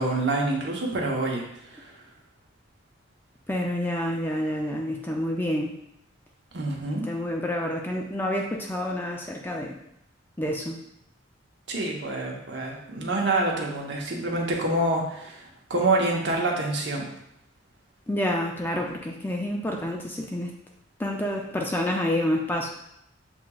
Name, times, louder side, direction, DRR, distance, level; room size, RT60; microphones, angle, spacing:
voice 1, 0.0-1.4 1.7-1.9 6.5-7.0 11.7-17.1, right 2 dB, 60° right, -1 dB, 0.9 m, -27 dB
voice 2, 3.5-5.7 7.1-9.7 10.4-10.8 18.1-20.5 21.0-22.7, left 1 dB, 10° left, 0 dB, 0.3 m, -28 dB
7.1 x 2.9 x 2.3 m, 0.78 s
head